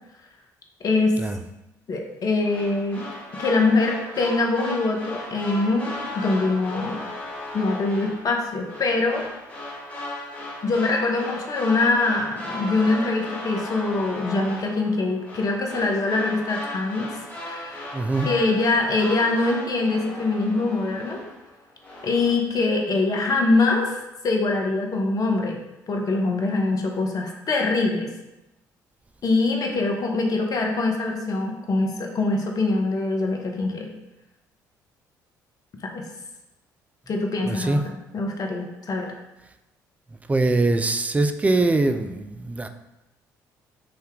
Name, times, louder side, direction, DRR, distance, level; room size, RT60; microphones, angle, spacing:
voice 1, 0.8-1.2 1.9-3.0 3.4-7.0 7.5-9.2 10.6-17.9 18.2-21.2 22.0-24.0 24.2-25.6 25.9-28.1 29.2-33.9 35.8-36.0 37.1-39.2, left 3 dB, 40° left, 1 dB, 0.7 m, -23 dB
sound 1, 2.4-21.5 21.8-22.3, left 1 dB, 15° left, 1.3 m, -36 dB
voice 2, 17.9-18.3 37.5-37.8 40.3-42.7, right 2 dB, 15° right, 7 dB, 0.3 m, -22 dB
3.3 x 2.7 x 3.5 m, 0.95 s
figure-of-eight pair, 50°, 10 cm